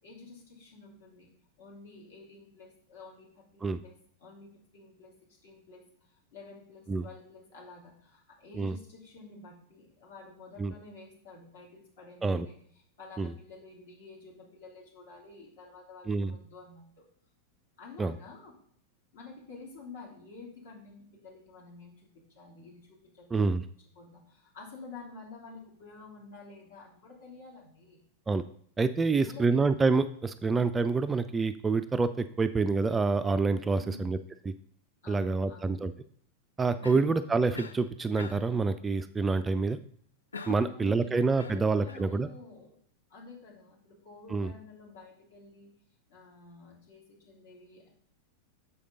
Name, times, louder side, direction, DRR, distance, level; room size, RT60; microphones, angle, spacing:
voice 1, 0.0-1.3 1.6-3.9 4.2-12.5 13.0-17.0 17.8-18.5 19.1-22.1 22.3-23.3 23.9-28.0 29.1-29.6 33.7-34.2 35.0-35.8 40.5-42.8 43.1-45.7 46.1-47.9, left 3 dB, 60° left, -4 dB, 3.1 m, -50 dB
voice 2, 23.3-23.6 28.3-28.4 28.8-34.2 35.1-35.9 36.6-39.8 40.5-42.3 44.3-44.5, right 4 dB, 15° right, 12 dB, 0.3 m, -27 dB
Cough, 36.8-37.2 37.5-37.8 38.2-38.6 40.3-40.8 41.4-42.1, left 4 dB, 75° left, 0.6 m, -43 dB
7.0 x 5.0 x 5.2 m, 0.62 s
figure-of-eight pair, 90°, 0 cm